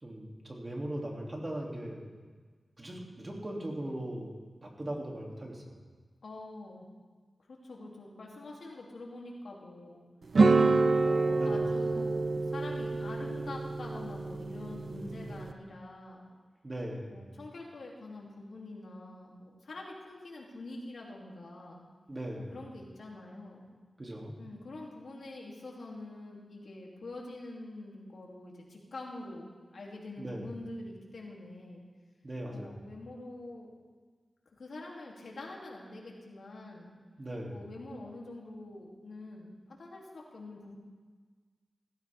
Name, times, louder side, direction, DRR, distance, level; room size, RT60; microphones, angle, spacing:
voice 1, 0.0-2.0 2.8-4.3 4.6-5.7 11.3-11.6 14.8-15.4 16.6-17.1 22.1-22.5 24.0-24.3 30.2-30.5 32.2-32.8 37.2-37.6, right 1 dB, 35° right, -1 dB, 2.9 m, -39 dB
voice 2, 6.2-6.9 7.5-10.0 11.0-16.3 17.0-21.9 22.5-23.7 24.4-31.8 32.5-33.7 34.5-36.9 37.5-40.7, left 2 dB, 80° left, -2 dB, 3.0 m, -45 dB
sound 1, 10.3-15.5, right 3 dB, 65° right, 0.9 m, -27 dB
16.5 x 15.5 x 3.6 m, 1.5 s
wide cardioid pair, 85°, 0 cm